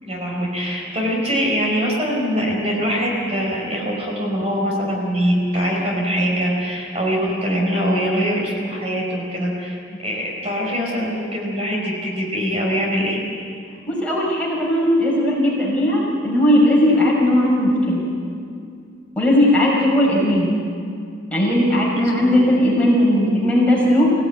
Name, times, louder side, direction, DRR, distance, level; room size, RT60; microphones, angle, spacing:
voice 1, 0.0-13.2 21.9-22.4, equal, 35° right, -2 dB, 4.9 m, -23 dB
voice 2, 13.9-18.0 19.2-20.5 21.3-24.1, left 1 dB, 5° left, -4 dB, 5.5 m, -17 dB
25.0 x 17.0 x 9.5 m, 2.3 s
head